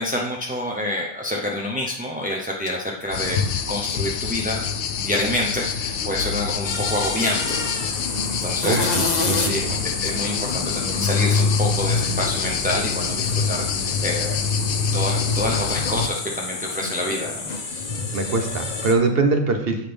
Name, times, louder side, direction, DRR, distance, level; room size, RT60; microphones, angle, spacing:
voice 1, 0.0-4.6 5.0-7.6 8.3-9.0 9.4-9.6 10.0-14.4 14.9-17.4 17.7-17.9, left 1 dB, 10° right, -2 dB, 0.4 m, -27 dB
sound 1, 3.1-16.1, left 5 dB, 80° left, 0.9 m, -25 dB
sound 2, 6.6-18.9, left 3 dB, 40° left, 0.8 m, -29 dB
voice 2, 8.6-9.8 18.1-19.9, right 3 dB, 60° right, 5 dB, 1.2 m, -23 dB
7.8 x 5.6 x 3.4 m, 0.81 s
omnidirectional pair, 1.2 m